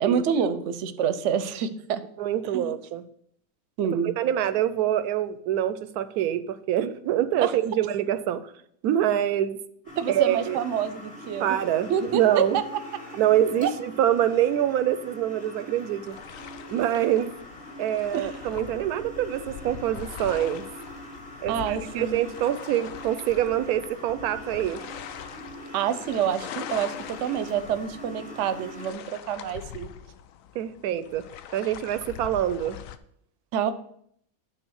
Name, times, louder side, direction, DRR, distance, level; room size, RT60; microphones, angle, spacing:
voice 1, 0.0-2.0 2.5-2.7 3.8-4.1 7.4-7.5 10.0-11.6 11.9-12.6 13.6-13.7 18.1-18.3 21.5-22.3 25.7-29.9 33.5-33.7, right 8 dB, 60° right, 12 dB, 0.9 m, -27 dB
voice 2, 2.2-3.0 4.0-8.4 8.8-9.6 10.1-10.6 11.4-12.6 13.2-16.1 16.7-17.3 17.8-20.6 21.4-24.8 30.5-31.3 31.5-32.8, right 11 dB, 85° right, 13 dB, 1.1 m, -25 dB
sound 1, 9.8-28.9, left 1 dB, 40° left, 3.1 m, -43 dB
sound 2, 16.0-33.0, left 10 dB, 70° left, 0.9 m, -43 dB
9.0 x 3.8 x 6.3 m, 0.68 s
omnidirectional pair, 1.6 m